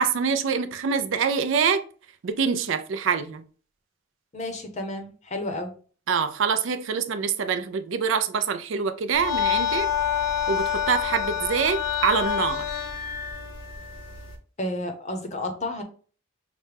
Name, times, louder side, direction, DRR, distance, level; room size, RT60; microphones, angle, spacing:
voice 1, 0.0-1.8 2.2-3.4 6.1-9.9 10.5-12.7, right 6 dB, 70° right, 0.4 m, -25 dB
voice 2, 4.3-5.7 14.6-15.8, left 1 dB, 35° left, 0.7 m, -31 dB
sound 1, 9.1-14.3, left 8 dB, 85° left, 1.1 m, -27 dB
5.9 x 2.1 x 3.3 m
head